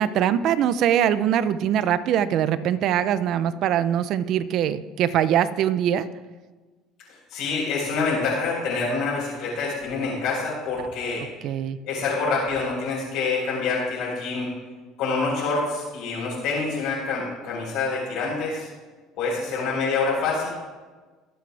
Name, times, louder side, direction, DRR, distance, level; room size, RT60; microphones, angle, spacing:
voice 1, 0.0-6.1 11.4-11.8, right 10 dB, 60° right, 14 dB, 0.7 m, -22 dB
voice 2, 7.3-11.3 11.8-14.5 15.0-18.7 19.2-20.5, left 4 dB, 70° left, -8 dB, 4.6 m, -26 dB
21.0 x 7.8 x 3.5 m, 1.3 s
supercardioid pair, 105°, 0 cm